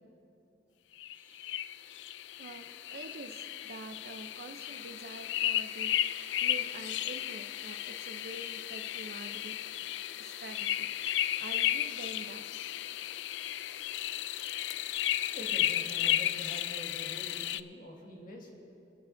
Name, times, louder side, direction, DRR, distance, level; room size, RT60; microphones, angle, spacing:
sound 1, 1.0-17.6, left 12 dB, 75° left, 0.3 m, -34 dB
voice 1, 1.1-1.6 15.3-18.5, equal, 50° left, -1 dB, 1.8 m, -46 dB
voice 2, 2.4-6.0 6.4-9.6 9.8-9.9 10.2-12.5, right 2 dB, 55° right, 8 dB, 0.5 m, -47 dB
26.5 x 10.5 x 2.6 m, 2.9 s
head